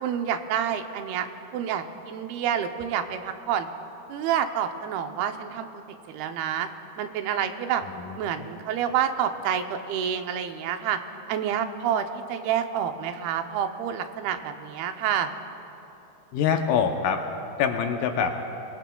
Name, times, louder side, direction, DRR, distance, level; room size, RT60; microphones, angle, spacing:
voice 1, 0.0-1.3 1.5-3.7 4.1-5.7 6.1-6.7 7.0-7.8 8.2-11.0 11.3-15.3, right 9 dB, 90° right, 7 dB, 2.7 m, -28 dB
voice 2, 8.0-8.5 16.3-17.2 17.6-18.4, left 7 dB, 80° left, 4 dB, 2.2 m, -25 dB
24.0 x 20.5 x 2.3 m, 3.0 s
omnidirectional pair, 4.3 m